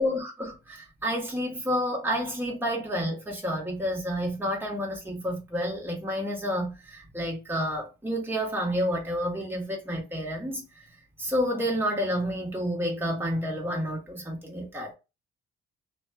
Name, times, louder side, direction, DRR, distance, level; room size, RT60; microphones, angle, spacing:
voice 1, 0.0-10.6 11.2-14.9, equal, 10° right, 1.2 m, -29 dB
2.6 x 2.3 x 2.7 m
cardioid pair, 90°, 20 cm